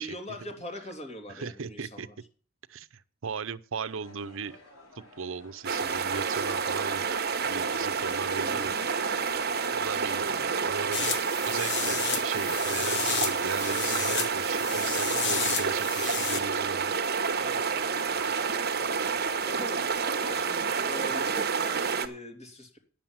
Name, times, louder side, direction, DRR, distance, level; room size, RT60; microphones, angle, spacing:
voice 1, 0.0-2.1 8.3-8.9 10.1-10.6 17.3-18.5 19.0-19.8 20.2-22.8, equal, 30° left, 2.7 m, -43 dB
voice 2, 1.3-2.1 2.7-4.5 5.0-7.0 7.5-9.2 9.7-11.1 11.4-16.9, right 5 dB, 65° right, 0.7 m, -37 dB
sound 1, 3.8-19.7, left 1 dB, 75° left, 4.7 m, -52 dB
sound 2, 5.6-22.1, right 5 dB, 45° right, 1.1 m, -29 dB
sound 3, 10.9-16.4, left 7 dB, 55° left, 1.1 m, -32 dB
10.0 x 7.5 x 7.3 m
head